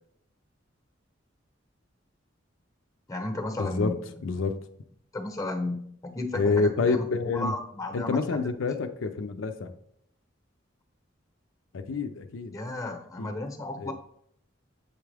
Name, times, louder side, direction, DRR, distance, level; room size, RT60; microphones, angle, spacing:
voice 1, 3.1-3.9 5.1-5.9 6.1-8.2 12.5-13.9, left 2 dB, 15° left, 5 dB, 0.8 m, -33 dB
voice 2, 3.6-4.0 4.2-4.6 6.3-7.5 7.9-9.7 11.7-12.6 13.2-13.3 13.8-13.9, left 4 dB, 85° left, 7 dB, 0.5 m, -27 dB
8.2 x 3.5 x 3.4 m, 0.69 s
head